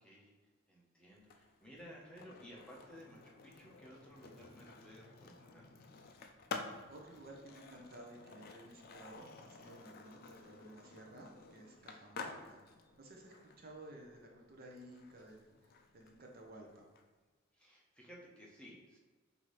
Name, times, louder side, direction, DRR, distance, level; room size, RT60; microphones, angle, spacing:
voice 1, 0.0-5.7 17.5-19.0, equal, 5° left, -5 dB, 0.8 m, -56 dB
Skateboard, 1.2-17.0, left 4 dB, 45° left, 0.4 m, -52 dB
voice 2, 6.9-12.6 13.0-16.9, right 1 dB, 45° right, 0 dB, 0.6 m, -54 dB
5.7 x 2.7 x 3.1 m, 1.3 s
head